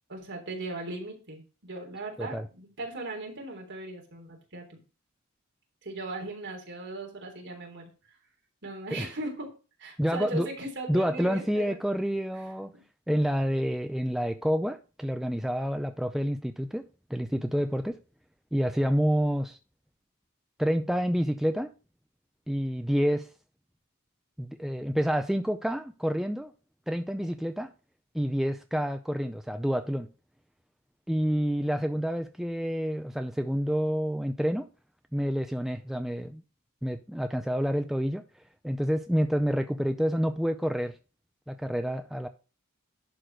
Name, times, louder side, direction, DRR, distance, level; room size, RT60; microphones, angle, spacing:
voice 1, 0.1-4.8 5.8-7.9 8.6-9.5 9.8-11.8 12.3-12.8 27.2-27.3, right 2 dB, 55° right, 3.4 m, -38 dB
voice 2, 10.0-10.5 10.9-12.7 13.1-16.8 17.1-18.0 18.5-19.6 20.6-21.7 22.5-23.3 24.4-26.5 26.9-27.7 28.1-30.1 31.1-34.7 35.1-36.4 36.8-38.2 38.6-40.9 41.5-42.3, equal, ahead, 0.5 m, -28 dB
11.5 x 4.1 x 6.3 m
head